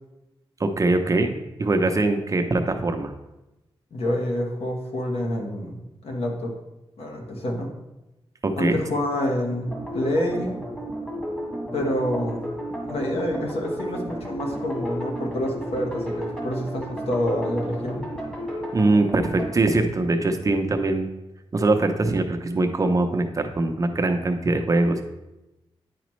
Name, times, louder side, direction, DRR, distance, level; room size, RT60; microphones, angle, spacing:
voice 1, 0.6-1.3 1.6-3.1 8.4-8.8 18.7-21.1 21.5-25.0, right 2 dB, 35° right, 5 dB, 0.6 m, -22 dB
voice 2, 3.9-6.5 7.0-7.7 8.6-10.5 11.7-12.4 12.9-18.0, left 1 dB, 85° left, 0 dB, 1.3 m, -27 dB
sound 1, 9.6-19.5, equal, 10° left, 1.8 m, -33 dB
9.2 x 5.1 x 3.1 m, 0.97 s
wide cardioid pair, 130°, 10 cm